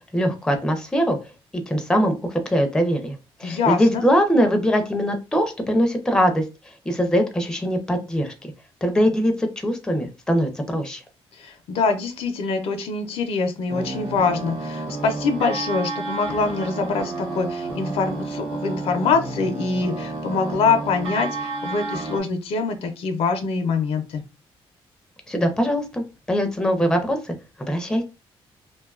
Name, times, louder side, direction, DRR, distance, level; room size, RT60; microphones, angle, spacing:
voice 1, 0.1-1.2 1.5-6.4 6.9-8.3 8.8-11.0 25.3-26.0 26.3-27.2 27.7-28.0, equal, 5° left, 5 dB, 0.5 m, -22 dB
voice 2, 3.4-4.0 11.4-24.2, left 4 dB, 80° left, 6 dB, 0.5 m, -24 dB
sound 1, 13.7-22.2, right 3 dB, 90° right, 0.9 m, -31 dB
2.6 x 2.2 x 2.3 m, 0.29 s
cardioid pair, 115°, 10 cm